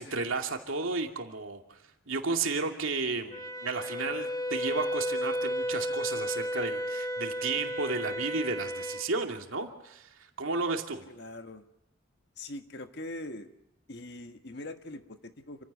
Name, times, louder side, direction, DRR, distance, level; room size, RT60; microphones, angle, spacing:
voice 1, 0.0-1.8 2.1-11.1, right 4 dB, 90° right, 3 dB, 2.6 m, -33 dB
Wind instrument woodwind instrument, 3.3-9.0, equal, 15° left, 1.7 m, -33 dB
voice 2, 11.1-11.6 12.4-13.5 13.9-15.6, left 1 dB, 55° left, 7 dB, 1.5 m, -42 dB
28.5 x 16.0 x 8.3 m, 0.85 s
head